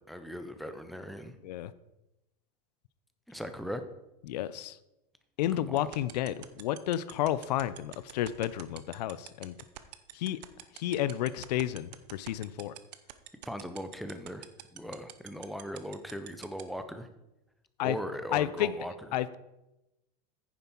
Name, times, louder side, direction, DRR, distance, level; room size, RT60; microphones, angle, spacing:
voice 1, 0.0-1.4 3.3-3.8 5.6-5.9 13.5-17.1 17.8-18.9, equal, ahead, 8 dB, 0.4 m, -39 dB
voice 2, 4.3-4.8 5.4-9.6 10.1-10.4 10.7-12.7 17.8-18.0 18.3-18.7 19.1-19.4, left 13 dB, 80° left, 16 dB, 0.6 m, -31 dB
sound 1, 5.8-16.6, right 15 dB, 90° right, 0.8 m, -44 dB
9.7 x 7.2 x 4.5 m, 0.93 s
supercardioid pair, 160°, 21 cm